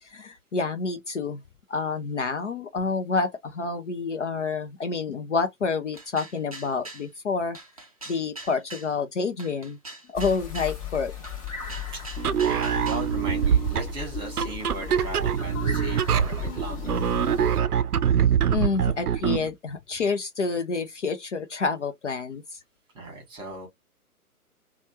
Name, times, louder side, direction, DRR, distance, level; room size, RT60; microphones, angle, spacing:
voice 1, 0.0-1.4 1.7-7.6 8.1-9.8 10.1-11.1 18.5-22.6, left 4 dB, 55° left, 0.6 m, -28 dB
sound 1, 5.9-7.1 7.5-8.9 9.4-10.8 11.2-13.1, right 2 dB, 25° right, 0.4 m, -42 dB
sound 2, 10.1-17.6, left 9 dB, 25° left, 0.8 m, -36 dB
sound 3, 12.2-19.5, right 8 dB, 75° right, 0.5 m, -24 dB
voice 2, 12.4-17.1 22.9-23.7, right 2 dB, 10° right, 1.2 m, -37 dB
3.1 x 2.2 x 2.8 m
figure-of-eight pair, 130°, 45 cm